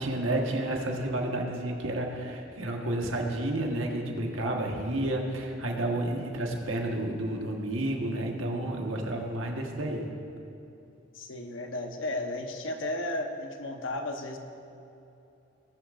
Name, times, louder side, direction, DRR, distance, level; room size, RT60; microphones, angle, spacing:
voice 1, 0.0-10.1, right 1 dB, 75° right, 1 dB, 1.4 m, -31 dB
voice 2, 11.1-14.4, left 1 dB, 70° left, 4 dB, 1.0 m, -34 dB
19.5 x 9.9 x 2.5 m, 2.8 s
head